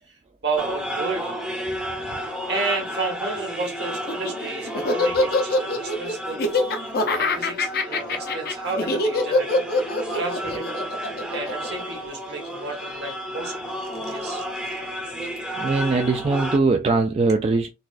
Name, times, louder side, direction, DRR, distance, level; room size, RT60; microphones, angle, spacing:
voice 1, 0.1-1.3 2.5-9.6 10.1-10.7 11.3-13.7 14.0-14.7, right 3 dB, 65° right, 1 dB, 1.5 m, -32 dB
sound 1, 0.6-16.6, equal, 5° right, 0.7 m, -32 dB
Laughter, 3.9-12.4, left 2 dB, 55° left, 0.6 m, -24 dB
voice 2, 15.6-17.7, right 3 dB, 35° right, 4 dB, 0.3 m, -21 dB
4.0 x 2.3 x 2.4 m, 0.26 s
head